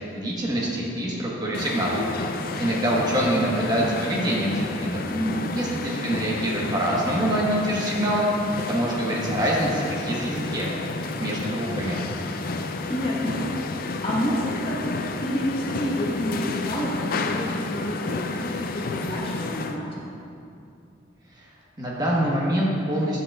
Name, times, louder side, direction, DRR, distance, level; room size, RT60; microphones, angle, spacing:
voice 1, 0.1-2.0 2.6-5.0 5.5-8.3 8.7-10.7 11.2-12.0 21.4-21.5 21.8-23.2, right 1 dB, 20° right, -5 dB, 1.2 m, -25 dB
sound 1, 1.5-19.8, left 3 dB, 50° left, 0.4 m, -31 dB
voice 2, 5.1-5.6 12.9-20.0, equal, 30° left, -5 dB, 1.2 m, -29 dB
10.0 x 7.8 x 2.3 m, 2.6 s
head